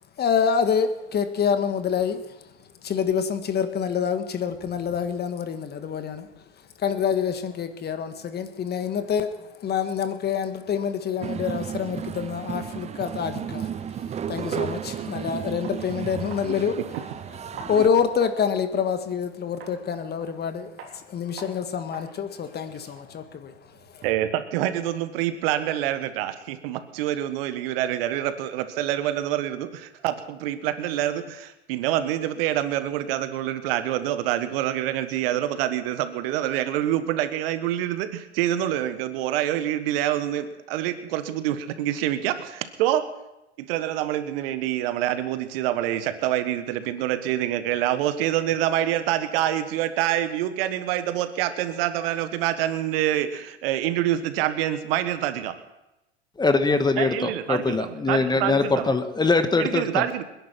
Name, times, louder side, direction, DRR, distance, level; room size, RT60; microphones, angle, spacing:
voice 1, 0.2-2.5 2.8-6.3 6.8-16.8 17.3-24.0, left 7 dB, 30° left, 9 dB, 1.6 m, -27 dB
sound 1, 11.2-17.9, right 8 dB, 20° right, 0.6 m, -33 dB
sound 2, 15.6-15.8 16.3-16.6 16.9-18.4 18.8-19.0 19.6-19.8 20.2-20.5 20.8-21.0 21.4-21.6 21.9-22.1 22.4-24.3, right 5 dB, 35° right, 3.7 m, -45 dB
voice 2, 24.0-43.0 43.6-55.6 57.0-58.9 59.6-60.2, right 12 dB, 60° right, 11 dB, 1.5 m, -26 dB
voice 3, 56.4-57.1 57.5-60.0, left 3 dB, 10° left, 9 dB, 1.4 m, -22 dB
27.0 x 10.5 x 4.5 m, 0.95 s
hypercardioid pair, 90°, 33 cm